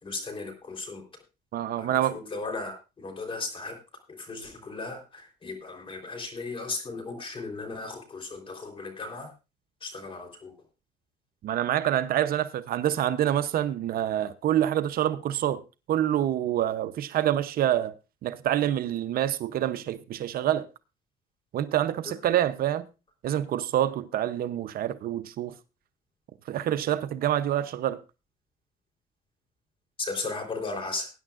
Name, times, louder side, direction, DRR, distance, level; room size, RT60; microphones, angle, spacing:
voice 1, 0.0-1.0 1.8-3.8 4.2-9.3 9.8-10.5 30.0-31.1, left 3 dB, 30° left, 3.7 m, -36 dB
voice 2, 1.5-2.2 11.4-15.6 15.9-17.9 18.2-20.7 21.5-22.8 23.2-25.5 26.5-28.0, right 11 dB, 60° right, 0.7 m, -26 dB
19.5 x 9.9 x 2.5 m
cardioid pair, 110°, 17 cm